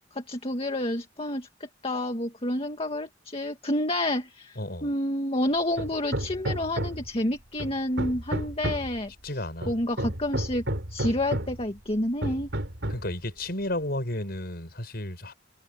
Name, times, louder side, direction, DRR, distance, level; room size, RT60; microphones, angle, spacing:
voice 1, 0.2-1.5 1.8-10.6 10.9-12.5, left 1 dB, 35° left, 2.1 m, -29 dB
voice 2, 4.6-4.9 9.2-9.7 12.9-15.3, left 1 dB, 60° left, 7.2 m, -32 dB
Hammer, 5.8-7.2 7.6-9.0 9.6-11.7 12.2-13.2, right 1 dB, 85° right, 3.9 m, -31 dB
head